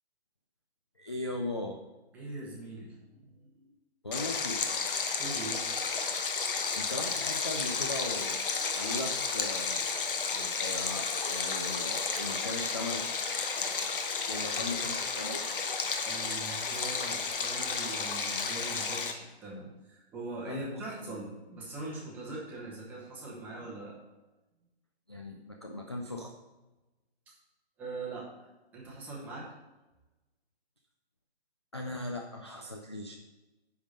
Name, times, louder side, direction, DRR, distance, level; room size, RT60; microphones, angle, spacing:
voice 1, 1.0-1.8 4.0-4.6 6.5-8.4 8.8-9.9 10.3-13.1 14.3-15.4 20.5-21.1 25.1-26.3 31.7-33.2, left 2 dB, 25° left, 3 dB, 0.4 m, -38 dB
voice 2, 2.1-3.7 5.2-5.7 16.1-24.0 27.8-29.5, right 2 dB, 5° right, -4 dB, 0.9 m, -42 dB
Stream, 4.1-19.1, left 5 dB, 55° left, 1.1 m, -32 dB
10.0 x 3.7 x 6.5 m, 1.1 s
hypercardioid pair, 165°, 32 cm